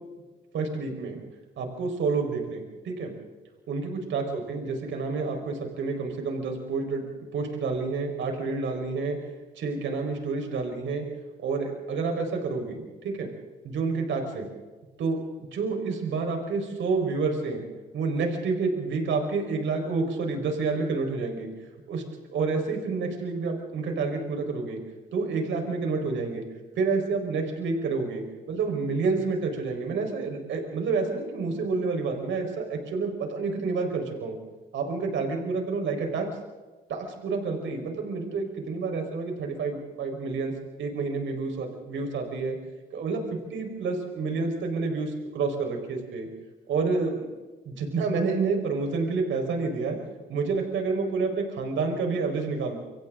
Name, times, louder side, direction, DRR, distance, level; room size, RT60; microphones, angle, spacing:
voice 1, 0.5-1.2 1.6-3.1 3.7-7.0 7.3-9.2 9.6-11.0 11.4-13.3 13.6-14.5 15.0-15.2 15.5-17.6 17.9-21.5 21.9-22.0 22.3-24.8 25.1-26.4 26.8-34.4 34.7-36.3 36.9-40.5 40.8-42.6 42.9-43.2 43.5-46.3 46.7-47.3 47.6-50.0 50.3-52.8, right 4 dB, 70° right, 3 dB, 4.8 m, -29 dB
28.5 x 24.0 x 3.8 m, 1.2 s
cardioid pair, 90°, 20 cm